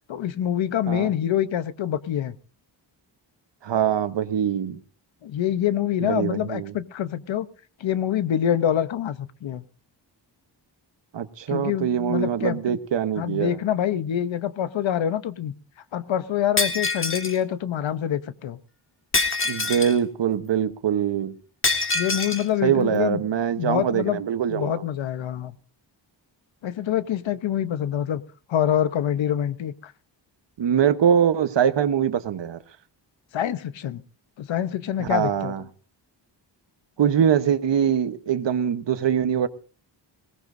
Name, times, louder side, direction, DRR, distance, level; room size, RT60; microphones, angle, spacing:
voice 1, 0.1-2.4 5.2-7.5 7.8-9.6 11.5-12.8 13.2-15.5 15.9-18.6 21.9-23.2 23.6-24.2 24.5-25.6 26.6-28.2 28.5-29.9 33.3-34.0 34.4-35.5, left 10 dB, 90° left, 1.0 m, -26 dB
voice 2, 3.6-4.8 6.0-6.7 11.1-13.6 19.4-21.4 22.6-24.9 30.6-32.6 35.0-35.6 37.0-39.5, right 8 dB, 75° right, 1.2 m, -23 dB
Shatter, 16.6-17.4 19.1-20.0 21.6-22.5, left 3 dB, 30° left, 1.8 m, -25 dB
20.0 x 18.0 x 2.7 m
wide cardioid pair, 100°, 44 cm